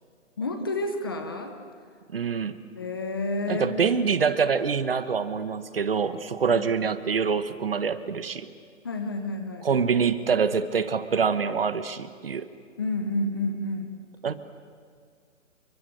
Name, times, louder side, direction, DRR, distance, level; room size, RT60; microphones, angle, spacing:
voice 1, 0.4-1.5 2.7-3.9 6.5-6.7 8.8-9.7 12.8-13.9, left 2 dB, 15° left, 6 dB, 1.0 m, -30 dB
voice 2, 2.1-2.6 3.5-8.5 9.6-12.5 14.2-14.3, right 6 dB, 45° right, 12 dB, 1.3 m, -25 dB
30.0 x 23.0 x 7.9 m, 2.1 s
hypercardioid pair, 170°, 40 cm